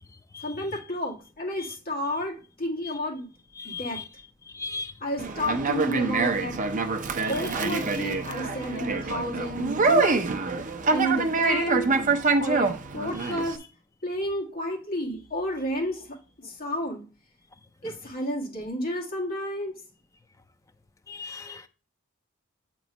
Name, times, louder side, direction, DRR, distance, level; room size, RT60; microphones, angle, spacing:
voice 1, 0.4-3.3 3.6-4.0 5.0-6.6 7.3-10.2 10.9-11.9 12.4-13.6 14.0-16.1 16.4-17.0 17.8-19.7, equal, 45° left, -2 dB, 1.6 m, -31 dB
voice 2, 3.6-4.0 4.6-4.9 21.1-21.6, left 4 dB, 15° left, 8 dB, 0.5 m, -36 dB
Conversation, 5.2-13.6, right 4 dB, 40° right, 0.6 m, -25 dB
7.8 x 3.0 x 5.2 m, 0.36 s
head